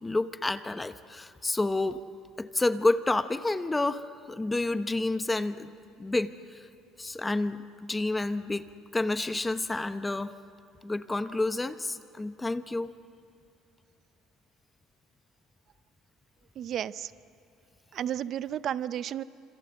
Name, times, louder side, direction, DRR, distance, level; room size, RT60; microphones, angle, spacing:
voice 1, 0.0-2.0 2.4-5.7 6.0-6.3 7.0-8.7 8.9-10.3 10.8-12.9, left 2 dB, 10° left, 11 dB, 0.9 m, -29 dB
voice 2, 16.6-17.1 17.9-19.2, right 10 dB, 50° right, 16 dB, 0.6 m, -32 dB
27.0 x 26.0 x 7.9 m, 2.7 s
cardioid pair, 120°, 0 cm